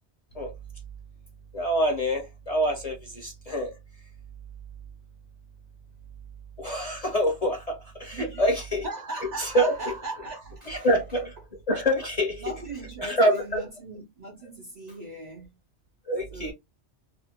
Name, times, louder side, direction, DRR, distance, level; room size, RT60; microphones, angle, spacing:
voice 1, 1.5-3.8 6.6-8.9 9.4-9.9 10.7-11.3 11.7-12.4 13.0-13.7 16.1-16.5, equal, 50° left, 0.4 m, -26 dB
voice 2, 8.1-8.5 8.8-11.3 12.4-15.5 16.3-16.5, right 2 dB, 55° right, 0.5 m, -38 dB
2.5 x 2.0 x 2.7 m
omnidirectional pair, 1.1 m